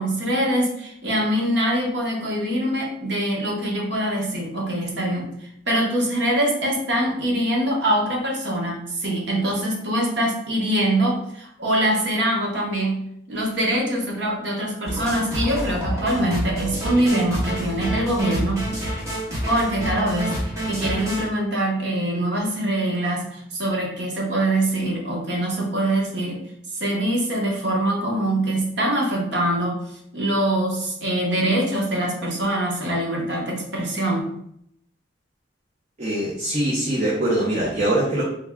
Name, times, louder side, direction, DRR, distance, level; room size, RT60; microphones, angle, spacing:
voice 1, 0.0-13.0 13.3-18.7 19.5-26.4 26.8-29.8 30.1-34.4, right 1 dB, 65° right, -2 dB, 0.9 m, -23 dB
sound 1, 14.8-21.3, equal, 15° right, 1.0 m, -28 dB
voice 2, 36.0-38.2, right 1 dB, 35° right, -5 dB, 0.6 m, -22 dB
3.4 x 2.2 x 3.4 m, 0.73 s
head